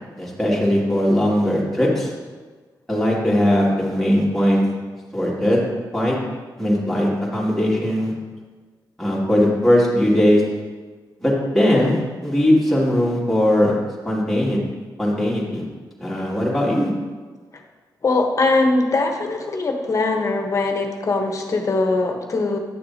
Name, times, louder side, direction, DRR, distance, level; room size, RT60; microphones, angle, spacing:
voice 1, 0.2-2.1 2.9-4.6 5.1-5.6 5.9-6.1 6.6-8.1 9.0-10.4 11.2-13.7 14.0-14.6 15.0-15.6 16.0-16.9, left 1 dB, 5° left, -6 dB, 2.4 m, -19 dB
voice 2, 18.0-22.6, left 3 dB, 45° left, 3 dB, 1.1 m, -21 dB
10.5 x 6.5 x 2.8 m, 1.4 s
cardioid pair, 75°, 8 cm